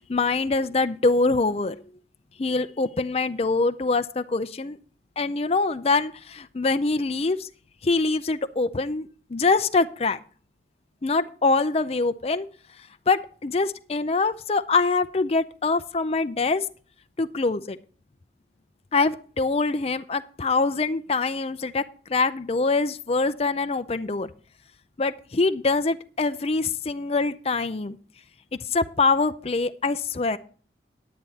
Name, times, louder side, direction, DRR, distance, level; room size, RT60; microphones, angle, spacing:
voice 1, 0.0-1.8 2.4-4.8 5.2-7.5 7.8-10.2 11.0-12.5 13.1-16.6 17.2-17.8 18.9-21.8 22.1-24.3 25.0-28.0 28.5-30.4, left 3 dB, 35° left, 11 dB, 0.5 m, -24 dB
10.5 x 9.6 x 4.1 m, 0.41 s
head